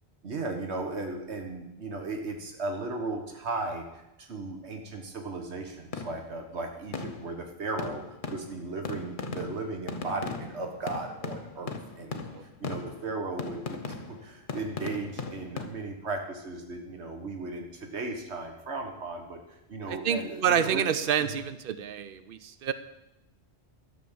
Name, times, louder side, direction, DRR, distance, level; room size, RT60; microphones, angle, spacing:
voice 1, 0.2-12.2 12.6-19.4 19.7-20.8 21.2-21.4, right 3 dB, 90° right, 3 dB, 1.6 m, -36 dB
sound 1, 5.9-6.4 6.9-7.5 7.8-15.7, left 4 dB, 50° left, 1.1 m, -38 dB
voice 2, 19.9-22.7, right 8 dB, 60° right, 12 dB, 0.9 m, -28 dB
13.0 x 6.2 x 7.9 m, 0.91 s
omnidirectional pair, 1.1 m